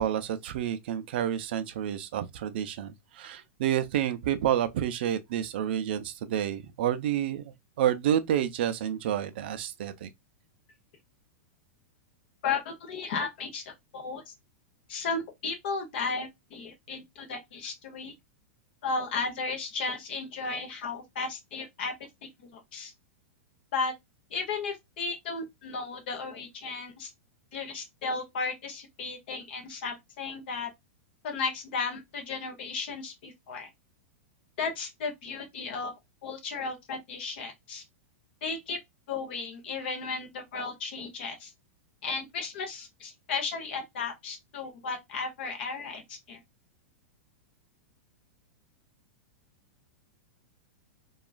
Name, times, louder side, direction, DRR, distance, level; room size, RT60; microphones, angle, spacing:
voice 1, 0.0-7.4 7.8-10.1, right 10 dB, 45° right, 0.4 m, -29 dB
voice 2, 12.4-14.3 14.9-18.1 18.8-21.9 22.4-22.9 23.7-23.9 24.3-27.1 27.5-30.7 31.2-33.7 34.6-35.9 36.2-37.8 38.4-38.8 39.1-41.5 42.0-46.4, left 4 dB, 45° left, 0.8 m, -34 dB
2.9 x 2.3 x 2.3 m
supercardioid pair, 180°, 8 cm